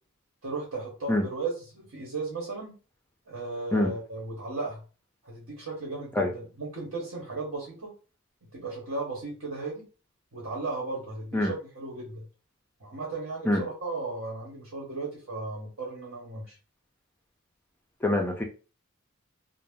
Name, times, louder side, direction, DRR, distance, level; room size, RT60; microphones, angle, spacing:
voice 1, 0.4-2.7 3.3-4.8 5.2-7.9 8.5-9.9 10.3-12.3 12.8-16.6, right 3 dB, 75° right, -3 dB, 1.1 m, -35 dB
voice 2, 18.0-18.4, left 1 dB, 10° left, 2 dB, 0.4 m, -24 dB
2.6 x 2.0 x 3.5 m, 0.35 s
head